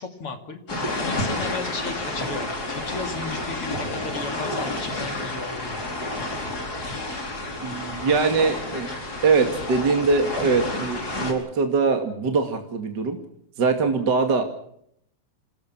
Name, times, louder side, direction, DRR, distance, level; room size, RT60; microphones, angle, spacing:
voice 1, 0.0-5.8, left 4 dB, 50° left, 6 dB, 3.4 m, -35 dB
sound 1, 0.7-11.3, left 2 dB, 30° left, 4.8 m, -30 dB
voice 2, 7.6-8.9 9.2-13.2 13.6-14.4, right 4 dB, 40° right, 5 dB, 2.7 m, -22 dB
28.0 x 19.5 x 6.2 m, 0.70 s
omnidirectional pair, 3.3 m